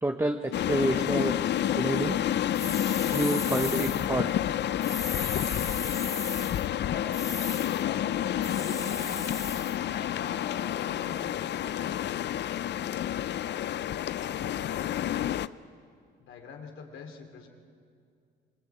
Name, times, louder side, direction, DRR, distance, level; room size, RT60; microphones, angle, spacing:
voice 1, 0.0-2.4 3.1-4.3, right 1 dB, 15° right, 4 dB, 1.2 m, -29 dB
sound 1, 0.5-15.5, left 11 dB, 60° left, 0.6 m, -29 dB
sound 2, 2.5-4.1 4.8-6.7 7.1-7.8 8.4-9.8, left 3 dB, 15° left, 1.0 m, -37 dB
voice 2, 6.8-9.4 9.8-12.2 12.5-13.2 13.9-15.5 16.2-17.5, left 5 dB, 80° left, 3 dB, 3.3 m, -44 dB
27.0 x 23.0 x 8.7 m, 2.3 s
cardioid pair, 90°, 20 cm